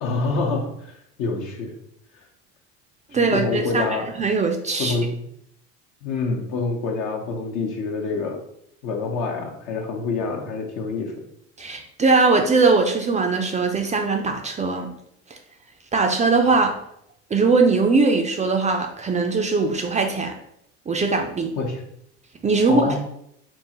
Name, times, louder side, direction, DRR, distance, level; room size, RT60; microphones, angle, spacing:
voice 1, 0.0-0.9 1.2-1.7 3.1-4.1 4.8-5.1 6.0-8.4 8.8-11.1 21.6-21.8 22.7-23.0, left 3 dB, 60° left, 1 dB, 0.9 m, -26 dB
voice 2, 3.1-3.8 4.2-5.0 11.6-14.9 15.9-16.8 17.3-20.4 20.9-21.5 22.4-23.0, right 4 dB, 20° right, 4 dB, 0.4 m, -20 dB
3.7 x 2.4 x 2.9 m, 0.74 s
hypercardioid pair, 80°, 34 cm